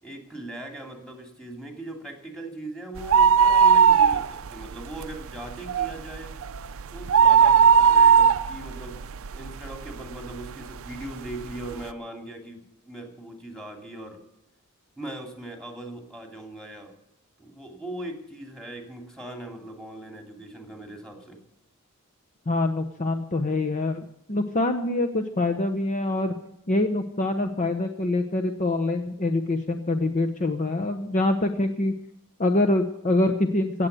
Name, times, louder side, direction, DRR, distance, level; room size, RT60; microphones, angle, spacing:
voice 1, 0.0-6.3 6.9-14.2 15.0-16.9 17.4-21.4, right 1 dB, 5° left, 2 dB, 2.7 m, -39 dB
sound 1, 3.0-4.6 4.9-5.0 5.5-9.9 10.4-10.5 11.3-11.4 11.6-11.7, right 7 dB, 65° right, 0.6 m, -17 dB
voice 2, 22.5-26.3 26.7-31.9 32.4-33.9, left 2 dB, 35° left, 6 dB, 0.9 m, -25 dB
17.0 x 7.8 x 9.2 m, 0.83 s
head